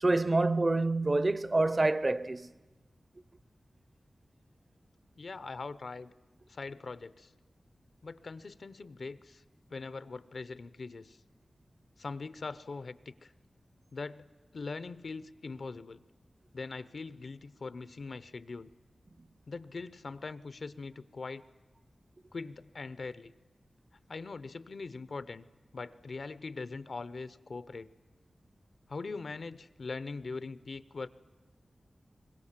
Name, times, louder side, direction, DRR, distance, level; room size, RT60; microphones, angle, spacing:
voice 1, 0.0-2.5, right 2 dB, 35° right, 0.7 m, -27 dB
voice 2, 5.2-6.1 6.5-7.3 8.0-9.4 9.7-11.2 12.0-13.3 13.9-14.3 14.5-16.0 16.5-18.7 19.5-21.4 22.3-23.3 24.1-25.4 25.7-27.9 28.9-31.1, left 4 dB, 70° left, 0.7 m, -41 dB
24.0 x 21.0 x 7.4 m
wide cardioid pair, 70°, 0 cm